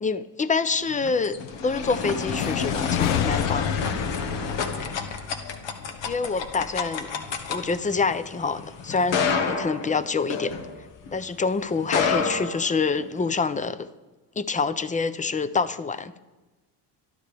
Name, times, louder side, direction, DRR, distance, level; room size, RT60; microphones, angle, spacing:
voice 1, 0.0-1.4 1.6-3.7 6.1-7.1 7.5-10.6 11.1-13.9 14.4-16.1, left 4 dB, 15° left, 14 dB, 0.6 m, -26 dB
sound 1, 0.8-11.2 11.8-13.3, left 5 dB, 70° left, 1.6 m, -29 dB
sound 2, 2.3-6.3, left 12 dB, 85° left, 0.7 m, -30 dB
22.0 x 12.5 x 3.5 m, 1.2 s
cardioid pair, 105°, 46 cm